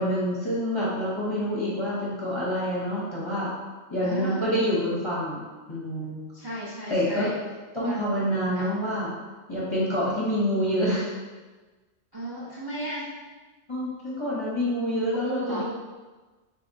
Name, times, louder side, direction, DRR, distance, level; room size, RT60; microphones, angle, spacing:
voice 1, 0.0-3.5 3.9-6.2 6.9-7.3 7.7-9.1 9.5-11.1 13.7-15.6, equal, 30° left, -8 dB, 0.6 m, -27 dB
voice 2, 4.0-4.5 6.3-7.3 7.8-8.0 8.5-8.7 12.1-13.1 15.1-15.6, right 1 dB, 30° right, -7 dB, 0.4 m, -35 dB
3.8 x 2.7 x 2.6 m, 1.3 s
omnidirectional pair, 1.3 m